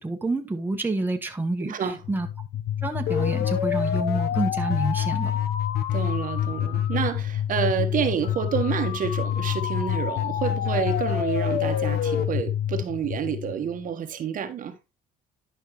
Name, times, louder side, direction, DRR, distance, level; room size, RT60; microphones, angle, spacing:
voice 1, 0.0-2.3 2.8-5.3, right 2 dB, 10° right, 1.4 m, -28 dB
voice 2, 1.6-2.0 5.9-14.7, right 7 dB, 50° right, 1.4 m, -29 dB
sound 1, 2.0-13.9, left 10 dB, 70° left, 1.0 m, -27 dB
11.0 x 5.6 x 3.1 m
cardioid pair, 110°, 17 cm